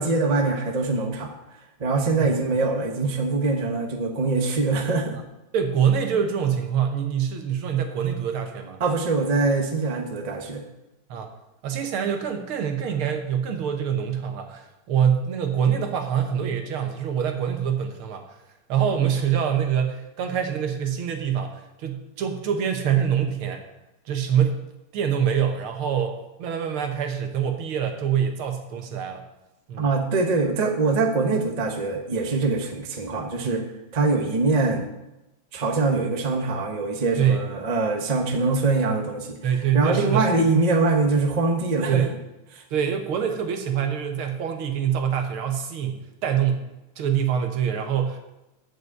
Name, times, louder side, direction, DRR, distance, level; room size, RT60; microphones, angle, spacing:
voice 1, 0.0-1.3 1.8-5.2 8.8-10.6 29.8-33.6 33.9-34.9 35.5-39.4 39.7-42.1 42.5-42.6, right 3 dB, 25° right, 4 dB, 0.9 m, -23 dB
voice 2, 5.5-8.8 11.1-11.3 11.6-18.4 18.7-23.6 24.1-24.6 24.9-29.2 29.7-29.9 33.4-33.6 37.2-37.5 39.4-40.3 41.9-42.2 42.7-46.7 47.0-48.2, right 8 dB, 80° right, 5 dB, 2.1 m, -25 dB
8.0 x 6.3 x 8.1 m, 0.93 s
omnidirectional pair, 2.3 m